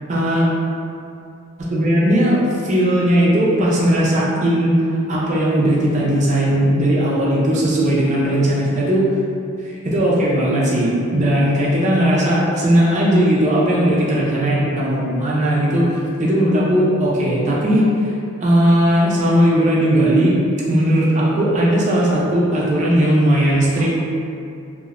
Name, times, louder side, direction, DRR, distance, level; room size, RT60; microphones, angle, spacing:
voice 1, 0.1-0.5 1.6-4.8 5.1-9.1 9.6-17.9 18.4-20.4 20.7-24.0, right 1 dB, 35° right, -5 dB, 0.4 m, -17 dB
2.8 x 2.0 x 2.4 m, 2.6 s
head